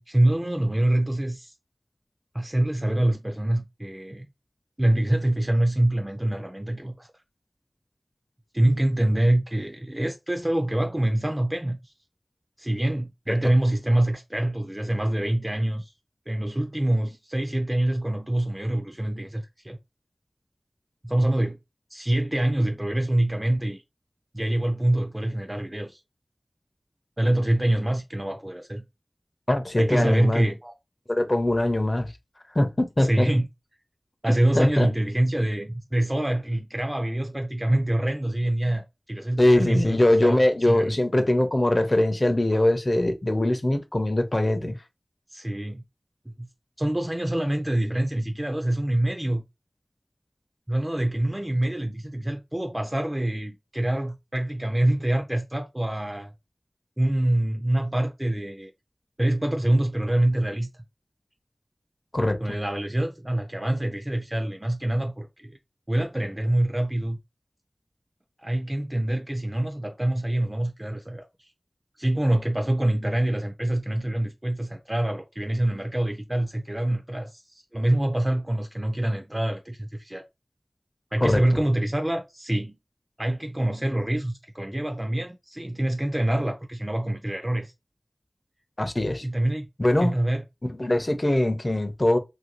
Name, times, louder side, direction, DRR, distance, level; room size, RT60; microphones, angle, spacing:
voice 1, 0.0-1.5 2.3-4.3 4.8-7.2 8.5-11.9 12.6-15.9 16.3-19.8 21.0-21.6 21.9-23.8 24.3-26.0 27.2-28.8 29.8-30.7 33.0-33.5 34.2-40.4 40.6-41.0 44.6-44.7 45.3-45.8 46.4-46.5 46.8-49.4 50.7-56.3 57.0-58.7 59.2-60.7 62.4-65.6 65.9-67.2 68.4-71.3 72.0-80.2 81.1-82.8 83.2-87.7 89.2-89.7 90.0-90.4, right 1 dB, 20° right, 0.4 m, -25 dB
voice 2, 29.5-30.5 31.1-32.1 32.5-33.3 34.6-34.9 39.4-44.8 62.1-62.4 81.2-81.4 88.8-89.3 89.8-90.1 90.6-92.2, left 1 dB, 40° left, 0.5 m, -22 dB
3.0 x 2.5 x 2.9 m
wide cardioid pair, 45°, 0 cm